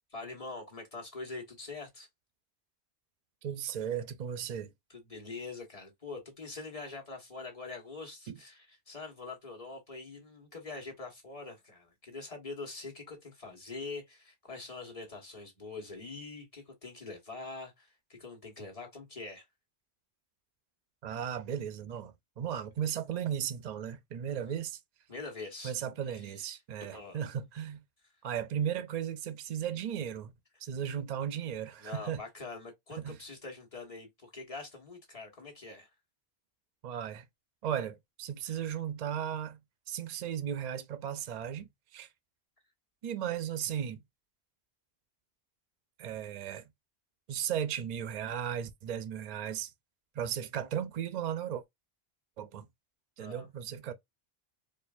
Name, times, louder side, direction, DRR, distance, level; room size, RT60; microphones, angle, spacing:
voice 1, 0.1-2.1 4.9-19.4 24.3-24.6 25.1-25.7 26.1-26.5 26.9-27.2 31.8-35.9 38.4-38.7 53.2-53.5, left 3 dB, 35° left, 1.4 m, -44 dB
voice 2, 3.4-4.7 8.3-8.4 21.0-24.8 25.6-27.8 28.2-30.3 30.6-32.2 33.0-33.2 36.8-37.2 37.6-39.6 39.9-42.1 43.0-44.0 46.0-46.7 47.3-49.7 50.1-51.6 52.4-52.6 53.2-53.9, right 9 dB, 55° right, 0.5 m, -36 dB
4.4 x 2.6 x 2.4 m
omnidirectional pair, 1.1 m